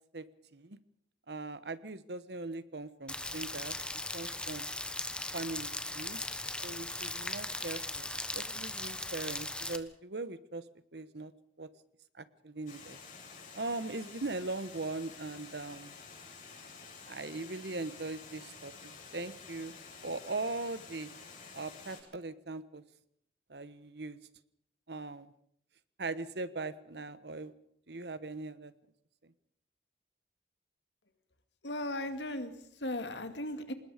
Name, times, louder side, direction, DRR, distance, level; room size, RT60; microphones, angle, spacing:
voice 1, 1.3-3.7 4.1-4.7 5.3-6.2 6.6-10.6 10.9-11.3 11.6-11.7 12.2-13.0 13.5-15.9 17.1-19.7 20.0-21.1 21.5-22.8 23.5-24.2 24.9-25.3 26.0-27.5 27.9-28.7, right 3 dB, 70° right, 14 dB, 1.2 m, -40 dB
Rain, 3.1-9.8, left 2 dB, 5° left, 1.2 m, -38 dB
Water, 12.7-22.0, left 5 dB, 50° left, 7.5 m, -50 dB
voice 2, 31.6-33.7, left 1 dB, 85° left, 8 dB, 2.3 m, -37 dB
26.0 x 20.0 x 5.1 m, 0.68 s
head